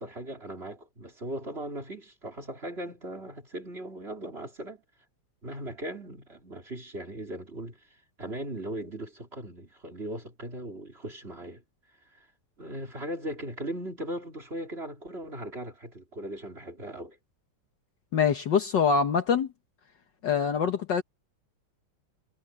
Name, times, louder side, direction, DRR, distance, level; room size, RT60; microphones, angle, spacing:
voice 1, 0.0-4.8 5.4-7.8 8.2-11.6 12.1-12.3 12.6-17.2, right 1 dB, 25° right, 3.6 m, -38 dB
voice 2, 18.1-19.5 20.2-21.0, left 6 dB, 60° left, 1.7 m, -24 dB
omnidirectional pair, 2.4 m